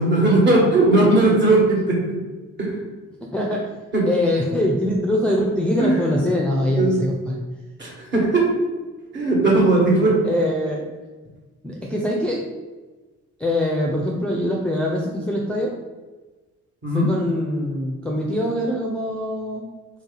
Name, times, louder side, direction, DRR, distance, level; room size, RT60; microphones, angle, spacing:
voice 1, 0.0-2.1 2.6-2.8 3.9-4.0 5.8-6.2 6.7-7.0 7.8-8.5 9.1-10.2 16.8-17.1, right 2 dB, 40° right, -3 dB, 1.5 m, -18 dB
voice 2, 3.2-3.7 4.0-7.4 10.2-11.0 11.6-12.4 13.4-15.7 16.9-19.7, left 1 dB, 5° left, -3 dB, 0.5 m, -23 dB
3.4 x 2.7 x 3.9 m, 1.3 s
cardioid pair, 90°, 30 cm